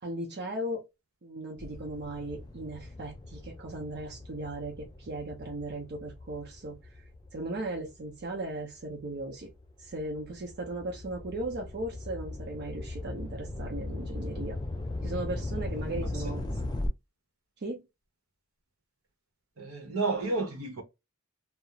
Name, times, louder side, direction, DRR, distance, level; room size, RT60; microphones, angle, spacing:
voice 1, 0.0-0.9 1.2-6.8 7.3-9.5 9.8-14.6 15.0-16.4 17.6-17.8, right 2 dB, 50° right, 0.6 m, -37 dB
sound 1, 1.6-8.3 8.9-16.9, left 2 dB, 20° left, 0.4 m, -39 dB
voice 2, 19.6-20.8, right 3 dB, 75° right, 0.9 m, -32 dB
2.4 x 2.0 x 2.8 m
head